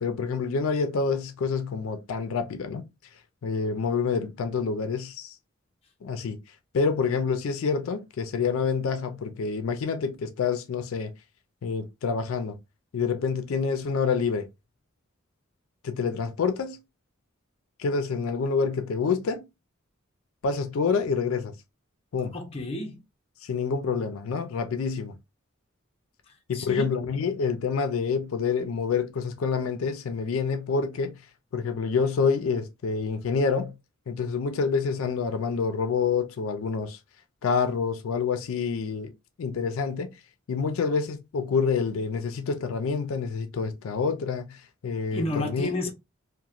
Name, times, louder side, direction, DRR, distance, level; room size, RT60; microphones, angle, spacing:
voice 1, 0.0-2.9 3.4-5.4 6.0-6.4 6.7-11.1 11.6-12.6 12.9-14.5 15.8-16.8 17.8-19.4 20.4-21.6 22.1-22.4 23.4-25.2 26.5-31.2 31.5-33.8 34.1-37.0 37.4-39.1 39.4-40.1 40.5-45.2 45.5-45.9, left 5 dB, 80° left, 0.4 m, -27 dB
voice 2, 22.3-23.0 26.3-26.9 45.1-45.9, left 2 dB, 30° left, 0.6 m, -31 dB
2.9 x 2.1 x 2.4 m
head